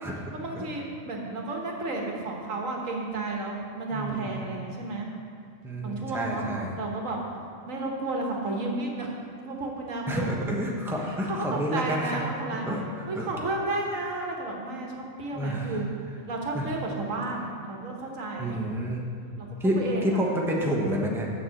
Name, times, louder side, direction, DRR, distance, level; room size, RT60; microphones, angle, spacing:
voice 1, 0.3-5.1 5.8-6.5 6.8-7.2 7.7-9.1 9.4-10.3 11.0-12.8 13.1-15.9 16.3-18.6 19.4-20.2, right 2 dB, 85° right, 0 dB, 1.7 m, -32 dB
voice 2, 3.9-4.5 5.6-6.8 10.1-12.2 12.7-13.3 15.3-15.8 16.5-16.7 18.4-19.0 19.6-21.3, equal, ahead, -2 dB, 1.0 m, -29 dB
7.2 x 6.7 x 7.7 m, 2.3 s
omnidirectional pair, 1.3 m